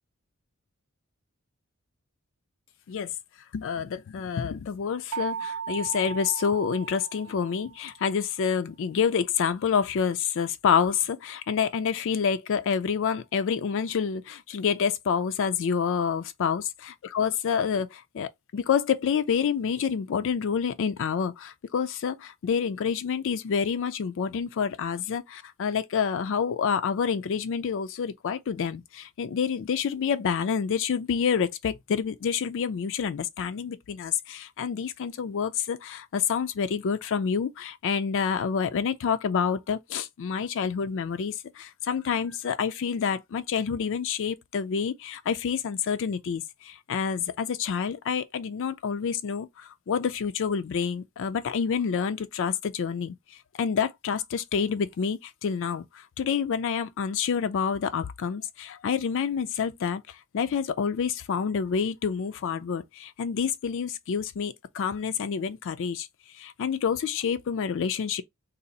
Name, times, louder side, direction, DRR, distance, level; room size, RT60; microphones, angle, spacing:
voice 1, 3.5-66.1 66.3-68.2, left 6 dB, 60° left, 0.4 m, -28 dB
sound 1, 5.1-7.9, right 7 dB, 90° right, 0.4 m, -36 dB
2.7 x 2.4 x 3.9 m
head